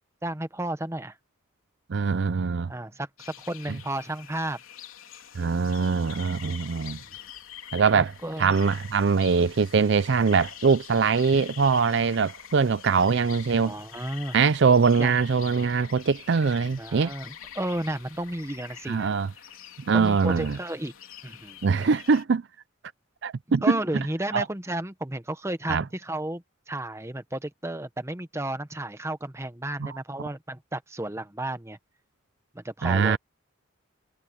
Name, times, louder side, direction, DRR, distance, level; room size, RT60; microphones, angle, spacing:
voice 1, 0.2-1.2 2.7-4.6 7.9-8.5 13.6-14.4 15.0-15.2 16.8-19.1 19.9-20.9 21.2-21.9 23.6-31.8 32.5-33.2, right 1 dB, 15° right, 0.9 m, -33 dB
voice 2, 1.9-2.7 5.4-7.0 7.7-8.1 8.4-13.7 14.3-17.1 18.9-19.3 19.9-20.6 21.6-22.4 23.2-24.0 24.3-24.5 25.7-25.8 29.8-29.9 32.8-33.2, right 5 dB, 60° right, 0.4 m, -22 dB
sound 1, 3.2-22.2, left 9 dB, 85° left, 3.7 m, -45 dB
head